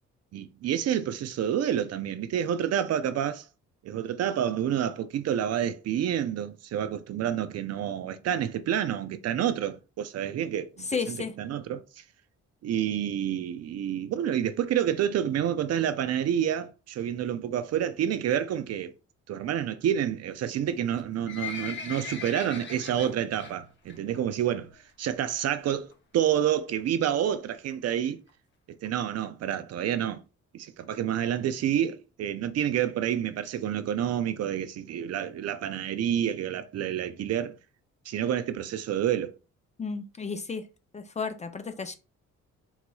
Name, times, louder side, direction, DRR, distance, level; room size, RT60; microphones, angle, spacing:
voice 1, 0.3-3.5 3.8-12.0 12.6-18.9 19.3-24.7 25.0-28.2 28.8-30.2 30.5-37.6 38.1-39.4, right 10 dB, 55° right, 0.4 m, -28 dB
voice 2, 10.9-11.4 39.8-40.7 40.9-42.0, left 5 dB, 25° left, 0.4 m, -33 dB
Livestock farm animals working animals, 20.9-23.5 23.9-24.2 24.5-24.6 25.3-25.4 25.6-25.7 25.9-26.0 26.5-26.8 27.4-27.5 27.7-27.8 28.0-28.1 28.3-28.4 28.8-28.9 29.4-29.5 30.0-30.1, left 6 dB, 40° left, 0.8 m, -39 dB
3.8 x 3.0 x 2.3 m
cardioid pair, 90°, 30 cm